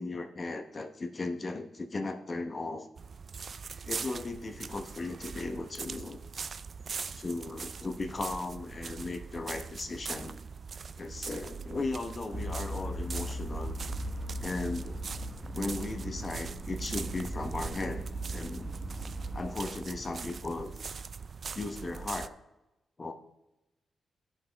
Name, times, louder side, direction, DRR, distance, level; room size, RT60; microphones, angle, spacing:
voice 1, 0.0-2.9 3.9-6.2 7.2-10.4 11.0-13.7 14.4-15.0 15.5-18.0 18.3-18.7 19.3-20.7 21.5-22.4 23.0-23.1, left 3 dB, 40° left, 5 dB, 0.9 m, -36 dB
sound 1, 3.0-22.3, right 5 dB, 55° right, 0.4 m, -42 dB
sound 2, 12.3-19.5, right 1 dB, 10° right, 1.1 m, -38 dB
15.0 x 5.7 x 3.4 m, 0.96 s
cardioid pair, 85°, 0 cm